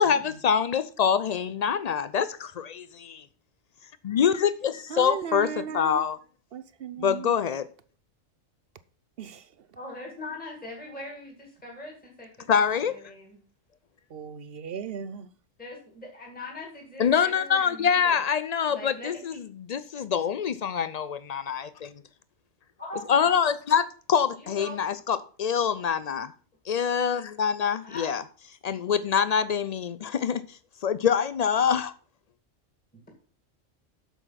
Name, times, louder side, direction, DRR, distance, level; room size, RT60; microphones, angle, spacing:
voice 1, 0.0-3.2 4.0-5.5 5.7-6.2 7.0-7.7 12.5-12.9 17.0-21.9 23.1-26.3 26.7-28.2 28.6-30.4 30.8-31.9, left 7 dB, 80° left, 0.3 m, -25 dB
voice 2, 4.9-6.1 6.5-7.3 9.2-9.5 14.1-15.3, right 8 dB, 55° right, 0.8 m, -36 dB
voice 3, 9.8-13.4 15.6-18.2 18.6-19.4 22.8-23.2 24.4-24.8 27.8-28.3, left 2 dB, 5° left, 2.2 m, -41 dB
8.3 x 7.0 x 5.7 m
omnidirectional pair, 1.3 m